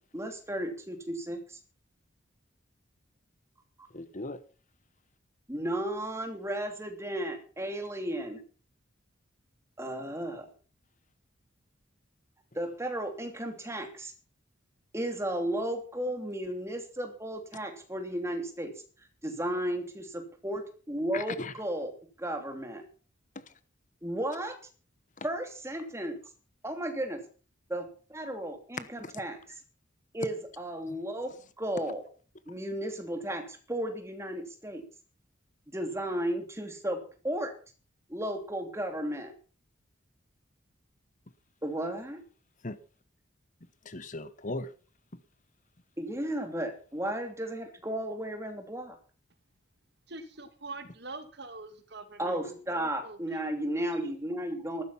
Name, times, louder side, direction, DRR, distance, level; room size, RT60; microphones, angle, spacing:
voice 1, 0.1-1.6 5.5-8.4 9.8-10.5 12.5-14.1 14.9-18.7 19.2-21.9 22.2-22.8 24.0-24.6 25.2-26.2 26.6-27.2 27.7-29.4 30.1-32.0 32.5-34.8 35.7-37.5 38.1-39.3 41.6-42.2 46.0-49.0 52.2-54.8, right 1 dB, 15° right, 2.9 m, -34 dB
voice 2, 3.9-4.4 21.1-21.5 23.3-23.5 25.2-25.3 29.0-29.1 30.9-31.0 42.6-42.8 43.8-44.7, left 2 dB, 40° left, 1.0 m, -38 dB
voice 3, 50.1-53.2 53.9-54.0, right 3 dB, 55° right, 2.3 m, -44 dB
14.5 x 13.0 x 5.8 m
head